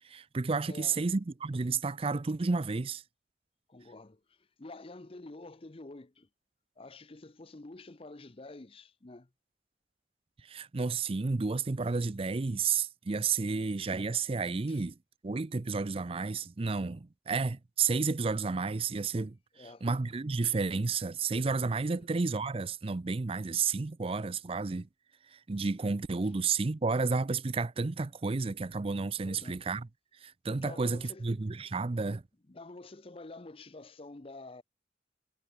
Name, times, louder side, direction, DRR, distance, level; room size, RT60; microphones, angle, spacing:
voice 1, 0.0-3.0 10.4-14.9 15.2-24.9 25.3-29.9 30.2-32.2, right 4 dB, 30° right, 0.5 m, -31 dB
voice 2, 0.7-1.0 3.7-6.3 6.8-9.3 14.7-14.9 19.5-19.9 21.9-22.1 29.2-29.6 30.5-31.3 32.5-34.6, left 2 dB, 30° left, 0.7 m, -48 dB
head